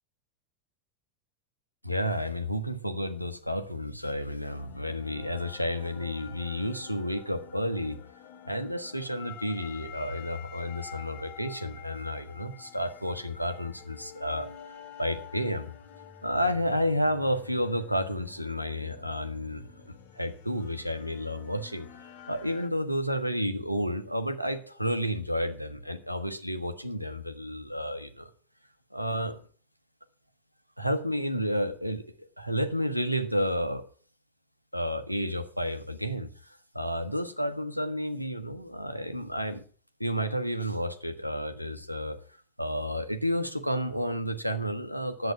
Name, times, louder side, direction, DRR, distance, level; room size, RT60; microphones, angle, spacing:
voice 1, 1.8-8.0 8.4-14.5 15.0-15.7 16.2-21.9 22.3-28.3 28.9-29.4 30.8-33.8 34.7-39.6 40.0-42.2 42.6-45.3, equal, 90° left, 8 dB, 1.0 m, -31 dB
sound 1, 4.5-22.7, left 9 dB, 45° left, 1.1 m, -49 dB
10.5 x 8.1 x 5.8 m, 0.44 s
figure-of-eight pair, 90°, 0 cm